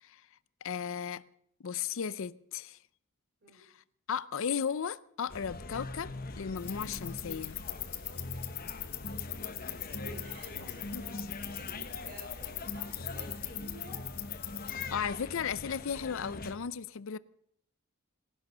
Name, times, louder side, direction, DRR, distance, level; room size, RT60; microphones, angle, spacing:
voice 1, 0.6-1.2 1.6-2.8 3.5-3.7 4.1-7.6 10.9-11.2 14.7-17.2, left 7 dB, 65° left, 0.5 m, -35 dB
sound 1, 5.3-16.6, left 2 dB, 45° left, 1.1 m, -42 dB
sound 2, 6.6-14.9, left 15 dB, 85° left, 1.5 m, -42 dB
voice 2, 7.9-8.4 9.6-14.1, right 1 dB, 45° right, 5.3 m, -52 dB
19.0 x 11.0 x 6.6 m
head